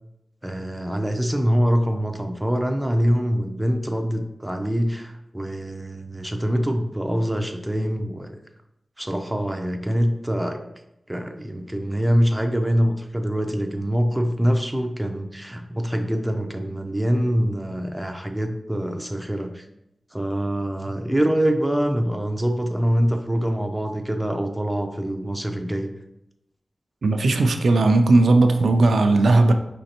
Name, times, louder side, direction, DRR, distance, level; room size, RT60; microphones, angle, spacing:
voice 1, 0.4-8.4 9.0-10.6 11.1-19.7 20.1-25.9, equal, 5° right, 0.4 m, -24 dB
voice 2, 27.0-29.5, right 2 dB, 90° right, 0.4 m, -17 dB
5.3 x 3.2 x 2.9 m
wide cardioid pair, 105°, 0 cm